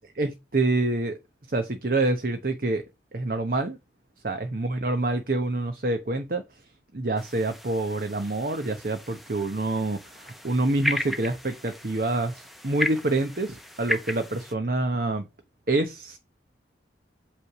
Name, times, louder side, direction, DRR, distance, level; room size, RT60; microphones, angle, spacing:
voice 1, 0.2-1.2 1.5-2.8 3.1-3.8 4.2-6.4 6.9-15.3 15.7-16.2, right 2 dB, 50° right, 0.9 m, -27 dB
sound 1, 7.2-14.5, equal, ahead, 0.8 m, -35 dB
8.3 x 3.3 x 5.9 m
head